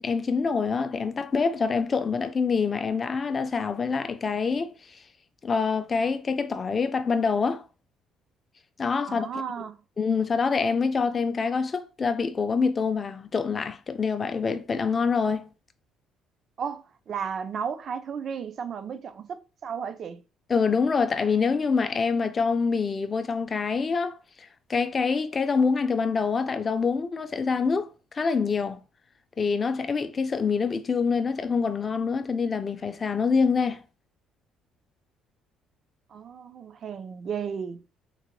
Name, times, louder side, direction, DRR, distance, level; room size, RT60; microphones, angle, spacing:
voice 1, 0.0-4.7 5.4-7.6 8.8-9.3 10.0-15.5 20.5-27.9 28.1-28.8 29.4-33.8, left 5 dB, 30° left, 0.4 m, -26 dB
voice 2, 9.1-9.8 16.6-20.2 36.1-37.8, right 7 dB, 45° right, 0.4 m, -34 dB
3.8 x 2.0 x 3.0 m
cardioid pair, 135°, 0 cm